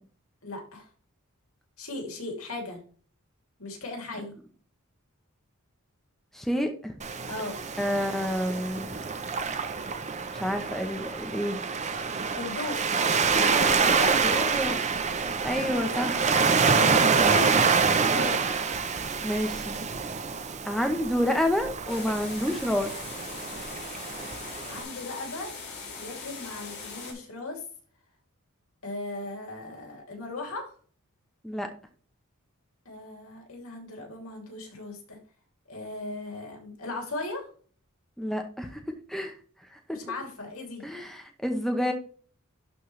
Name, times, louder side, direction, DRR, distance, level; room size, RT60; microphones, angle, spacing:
voice 1, 0.4-0.9 1.8-2.8 3.6-4.3 7.3-7.6 12.3-12.8 13.4-14.8 17.2-18.4 24.6-25.5 26.0-27.6 28.8-30.7 32.8-35.2 35.7-37.5 39.9-40.8, left 2 dB, 70° left, 1 dB, 2.8 m, -37 dB
voice 2, 6.3-6.9 7.8-9.0 10.3-11.6 14.2-14.8 15.4-16.3 17.2-17.4 19.2-19.8 20.6-22.9 31.4-31.7 38.2-38.8 39.1-39.3 39.7-40.2 40.8-41.9, equal, ahead, 4 dB, 0.9 m, -29 dB
Waves surf, 7.0-24.8, right 5 dB, 30° right, 0.7 m, -27 dB
sound 1, 21.9-27.1, left 4 dB, 55° left, 3.6 m, -40 dB
12.0 x 4.2 x 3.2 m, 0.42 s
head